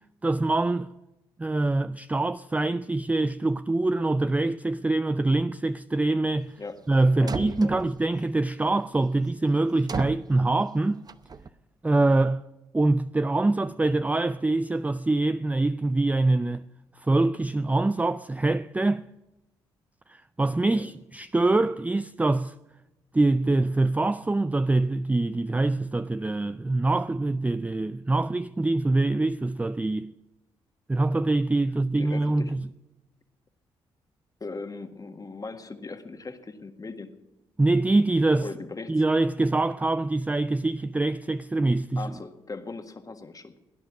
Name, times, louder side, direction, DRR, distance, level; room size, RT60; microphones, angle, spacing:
voice 1, 0.2-0.9 1.4-6.5 6.9-11.0 11.8-12.4 12.7-16.6 17.0-19.0 20.1-22.5 23.1-30.1 30.9-32.6 37.6-38.5 38.9-42.1, right 2 dB, 15° right, 0.4 m, -24 dB
sound 1, 6.9-7.0 7.3-8.1 9.9-10.3 11.1-11.5, right 5 dB, 35° right, 0.8 m, -33 dB
voice 2, 7.2-7.8 20.7-20.9 32.0-32.5 34.4-37.1 38.4-39.0 42.0-43.6, left 3 dB, 35° left, 1.7 m, -39 dB
17.5 x 10.5 x 6.2 m
supercardioid pair, 50°, 11 cm